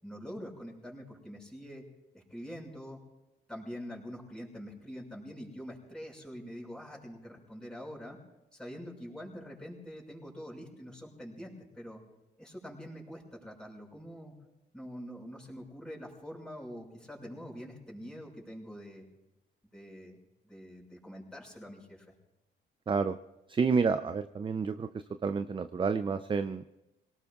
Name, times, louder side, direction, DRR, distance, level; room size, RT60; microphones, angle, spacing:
voice 1, 0.0-1.8 2.1-3.0 3.5-8.2 8.5-12.0 12.4-14.3 14.7-19.1 19.7-20.2 20.4-22.1, equal, 5° left, -3 dB, 5.9 m, -45 dB
voice 2, 22.9-23.2 23.5-24.9 25.2-26.6, right 5 dB, 25° right, 10 dB, 0.5 m, -29 dB
27.0 x 18.5 x 2.4 m, 0.98 s
cardioid pair, 90°, 20 cm